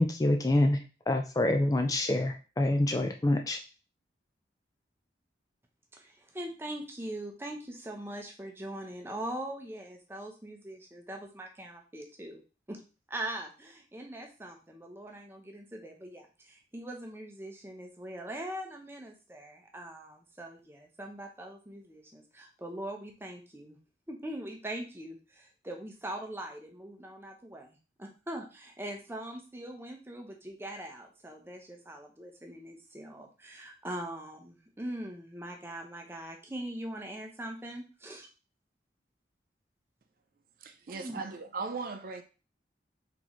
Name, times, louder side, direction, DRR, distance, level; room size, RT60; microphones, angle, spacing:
voice 1, 0.0-3.6, left 1 dB, 20° left, 0.3 m, -26 dB
voice 2, 5.9-12.4 12.7-12.8 13.1-23.8 24.1-38.3 40.9-41.3, right 1 dB, 15° right, 0.7 m, -42 dB
voice 3, 40.6-42.2, right 4 dB, 50° right, 0.4 m, -38 dB
4.0 x 3.8 x 3.0 m
head